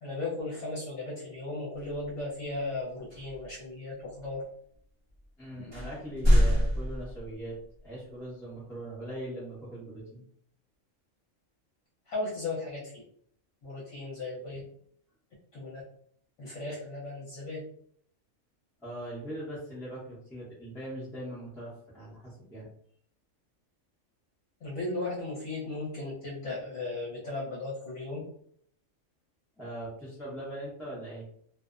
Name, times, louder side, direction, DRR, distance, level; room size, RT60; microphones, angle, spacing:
voice 1, 0.0-4.4 12.1-13.0 13.6-14.6 15.5-15.8 16.4-17.6 24.6-28.2, left 2 dB, 65° left, -6 dB, 1.0 m, -36 dB
sound 1, 1.8-2.1 3.1-3.5 4.2-4.3 5.1-5.2 5.7-7.6, equal, 25° right, 0.7 m, -25 dB
voice 2, 5.4-10.2 18.8-22.7 29.6-31.2, right 1 dB, ahead, -9 dB, 0.6 m, -40 dB
2.5 x 2.0 x 2.4 m, 0.65 s
omnidirectional pair, 1.4 m